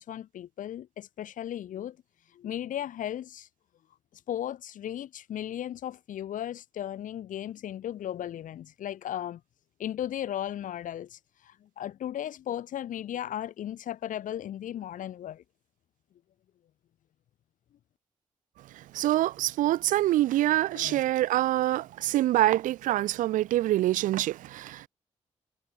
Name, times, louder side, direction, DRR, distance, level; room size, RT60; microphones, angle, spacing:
voice 1, 0.0-2.0 2.3-3.5 4.3-9.4 9.8-15.4 20.7-21.0, left 11 dB, 80° left, 1.4 m, -36 dB
voice 2, 18.9-24.9, right 15 dB, 80° right, 0.4 m, -25 dB
supercardioid pair, 45°, 13 cm